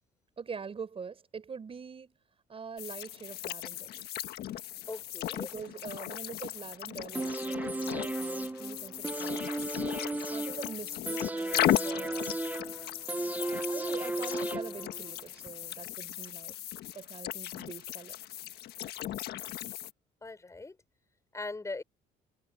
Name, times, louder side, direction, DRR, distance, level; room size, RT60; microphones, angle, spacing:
voice 1, 0.4-2.2 2.5-3.9 5.3-9.5 10.3-12.4 13.4-16.5 16.9-18.2, right 5 dB, 35° right, 6.0 m, -44 dB
sound 1, 2.8-19.9, left 13 dB, 70° left, 1.5 m, -36 dB
voice 2, 4.9-5.5 20.2-20.7 21.3-21.8, left 3 dB, 20° left, 5.2 m, -40 dB
sound 2, 7.1-15.1 15.5-15.6, right 2 dB, 10° right, 1.0 m, -35 dB
cardioid pair, 110°, 17 cm